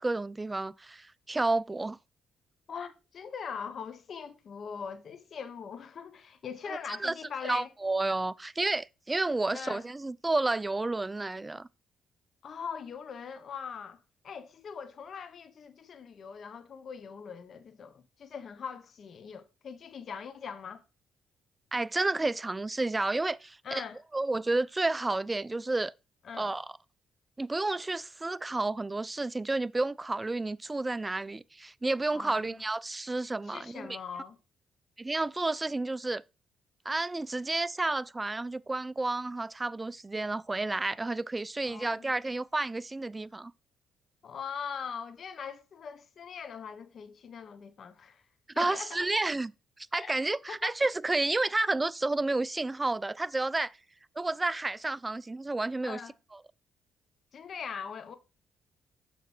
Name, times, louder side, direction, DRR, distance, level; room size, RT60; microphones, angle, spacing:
voice 1, 0.0-2.0 6.7-7.1 7.4-11.7 21.7-23.8 24.1-25.9 26.4-26.7 27.4-34.0 35.0-36.2 36.9-43.5 48.6-49.5 49.8-53.7 54.2-56.0, right 2 dB, 20° right, 0.4 m, -31 dB
voice 2, 2.7-7.7 9.5-9.8 12.4-14.0 14.2-20.8 23.6-24.0 26.2-26.5 32.1-32.6 33.4-34.4 41.7-42.1 44.2-48.2 48.5-49.0 49.9-50.2 50.5-50.7 55.8-56.1 57.3-58.2, left 6 dB, 55° left, 1.1 m, -41 dB
7.1 x 6.0 x 4.4 m
cardioid pair, 90°, 0 cm